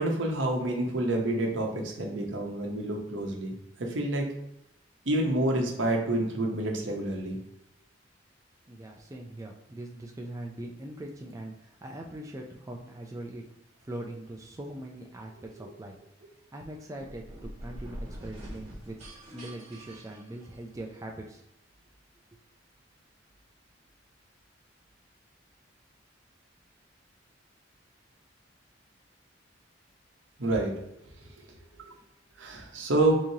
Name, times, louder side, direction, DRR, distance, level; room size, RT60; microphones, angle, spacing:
voice 1, 0.0-4.3 5.1-7.4 15.6-15.7 30.4-30.8 31.9-32.0 32.4-33.2, right 1 dB, 80° right, 1 dB, 0.8 m, -28 dB
voice 2, 8.7-13.4 13.8-16.0 16.5-19.0 19.3-21.4, right 1 dB, 15° right, 0 dB, 0.4 m, -41 dB
sound 1, 16.9-20.9, equal, 35° right, 1.2 m, -44 dB
3.6 x 3.1 x 2.7 m, 0.83 s
head